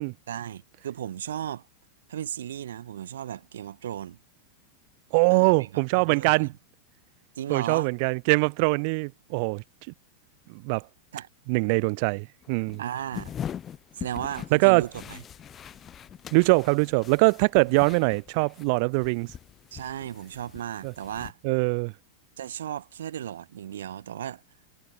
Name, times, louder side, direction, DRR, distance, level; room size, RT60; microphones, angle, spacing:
voice 1, 0.3-1.6 2.1-4.2 5.3-6.5 7.4-7.9 11.1-11.3 12.8-13.3 13.9-15.2 19.7-21.4 22.4-24.4, right 10 dB, 60° right, 3.3 m, -35 dB
voice 2, 5.1-6.5 7.5-9.6 10.5-10.8 11.5-12.8 14.5-14.9 16.3-19.3 20.8-20.9 21.4-21.9, right 34 dB, 45° right, 0.7 m, -23 dB
sound 1, 12.4-18.7 18.9-21.3, left 9 dB, 25° left, 1.0 m, -42 dB
figure-of-eight pair, 90°, 0 cm